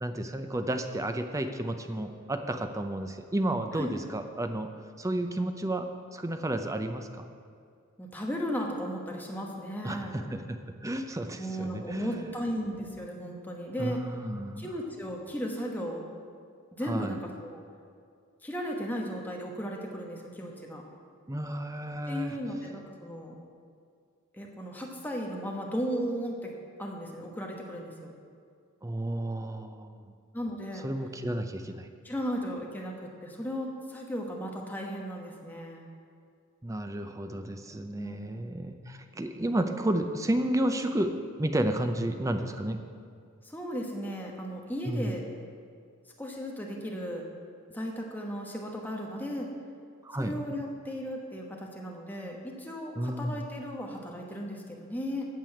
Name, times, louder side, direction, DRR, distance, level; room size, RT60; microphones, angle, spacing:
voice 1, 0.0-4.7 5.0-7.3 9.8-12.3 13.8-14.7 16.8-17.2 21.3-22.4 28.8-30.1 30.8-31.9 36.6-41.1 41.4-42.8 44.9-45.1 50.0-50.3 53.0-53.4, right 1 dB, 15° right, 7 dB, 0.6 m, -32 dB
voice 2, 8.0-10.2 11.4-14.0 14.6-16.1 16.7-17.6 18.4-20.8 22.1-23.3 24.3-28.1 30.3-30.8 32.0-35.9 37.7-38.3 38.6-38.7 43.4-45.3 46.2-47.2 47.7-49.5 50.2-55.3, equal, 10° left, 0 dB, 1.1 m, -36 dB
9.1 x 6.8 x 7.8 m, 2.2 s
head